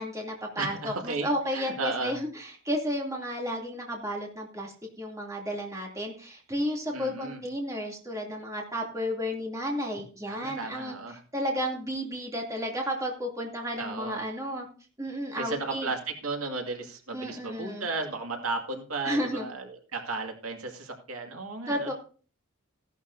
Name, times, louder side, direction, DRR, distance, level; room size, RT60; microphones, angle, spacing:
voice 1, 0.0-11.0 11.3-14.7 15.0-15.9 17.1-17.9 19.0-19.5 21.7-21.9, equal, 15° right, -1 dB, 2.7 m, -32 dB
voice 2, 0.6-2.2 6.9-7.4 10.2-11.2 13.8-14.2 15.4-21.9, right 3 dB, 80° right, 3 dB, 2.2 m, -34 dB
16.0 x 11.5 x 2.7 m, 0.39 s
head